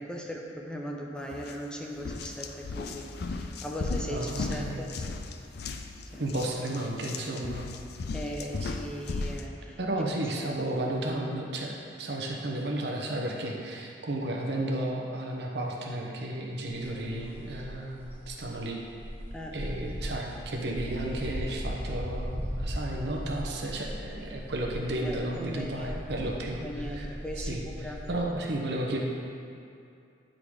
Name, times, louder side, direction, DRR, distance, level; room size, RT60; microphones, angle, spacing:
voice 1, 0.0-5.2 6.1-6.2 8.1-9.8 10.4-10.6 19.3-19.5 24.9-26.0 26.5-28.0, equal, 5° left, -1 dB, 0.6 m, -39 dB
sound 1, 1.3-1.5 1.9-9.5, left 3 dB, 65° left, 0.4 m, -36 dB
voice 2, 4.1-4.8 6.2-7.6 8.6-8.7 9.8-18.8 19.5-27.1 27.4-29.0, right 1 dB, 70° right, 0 dB, 0.9 m, -33 dB
sound 2, 16.7-28.2, equal, 35° left, 1.2 m, -38 dB
8.6 x 3.9 x 4.7 m, 2.6 s
head